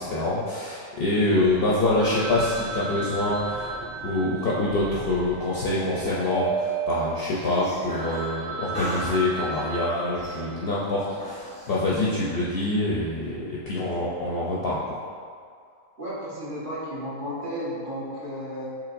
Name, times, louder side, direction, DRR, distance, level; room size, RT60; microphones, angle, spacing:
voice 1, 0.0-3.7 4.0-15.0, left 2 dB, 60° left, -6 dB, 0.6 m, -25 dB
sound 1, 1.3-8.2 8.7-9.7 10.2-11.8, right 4 dB, 5° left, 0.8 m, -35 dB
voice 2, 1.3-1.6 16.0-18.7, equal, 40° right, -10 dB, 1.4 m, -33 dB
Telephone, 2.0-6.3 6.6-6.7 7.2-7.3 7.7-7.8 8.0-10.9, right 2 dB, 80° right, 1.1 m, -36 dB
6.0 x 3.6 x 2.5 m, 2.2 s
omnidirectional pair, 1.4 m